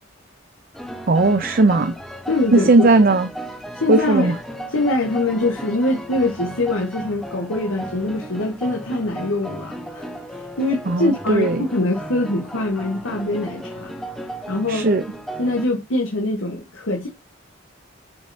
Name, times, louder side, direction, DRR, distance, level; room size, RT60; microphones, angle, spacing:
sound 1, 0.7-15.7, right 1 dB, ahead, 0.9 m, -35 dB
voice 1, 1.1-1.9 2.5-3.3 3.9-4.3 10.9-11.6 14.7-15.0, right 2 dB, 45° right, 0.5 m, -17 dB
voice 2, 2.3-2.9 3.7-4.3 4.7-10.1 10.6-13.9 14.5-14.9 15.4-17.1, left 2 dB, 85° left, 1.3 m, -23 dB
7.2 x 5.4 x 2.7 m
head